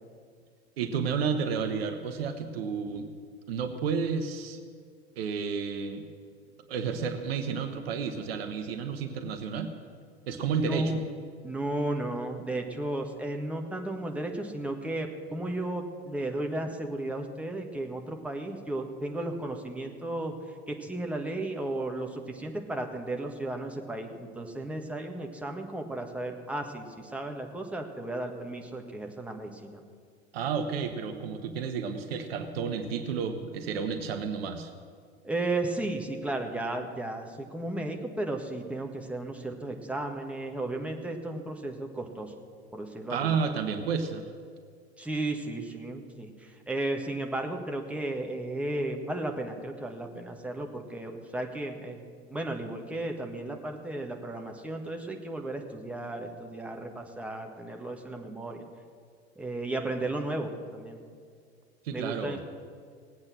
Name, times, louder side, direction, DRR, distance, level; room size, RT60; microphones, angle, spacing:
voice 1, 0.8-3.1 3.5-4.6 5.2-6.1 6.7-9.7 10.3-11.0 30.3-34.7 43.1-44.3 61.8-62.4, right 6 dB, 65° right, 8 dB, 1.2 m, -31 dB
voice 2, 10.7-11.1 11.4-20.3 20.7-29.8 35.2-42.3 42.7-43.3 45.0-58.7 59.4-61.0 61.9-62.4, right 2 dB, 5° right, 2 dB, 1.6 m, -34 dB
19.0 x 8.6 x 6.2 m, 2.1 s
figure-of-eight pair, 75°, 32 cm